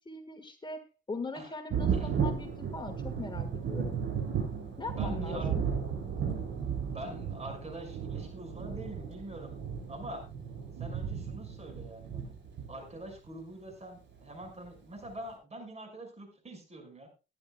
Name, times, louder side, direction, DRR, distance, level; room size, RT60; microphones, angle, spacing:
voice 1, 0.0-4.0 4.8-5.6, left 3 dB, 25° left, 6 dB, 1.6 m, -41 dB
Thunder, 1.7-13.1 14.4-14.5 15.0-15.1, right 7 dB, 70° right, 7.6 m, -34 dB
voice 2, 4.9-5.5 6.8-9.6 9.9-10.2 10.8-12.3 12.7-17.1, right 1 dB, 35° right, 5 dB, 5.4 m, -44 dB
19.0 x 10.5 x 2.3 m, 0.30 s
cardioid pair, 90°, 20 cm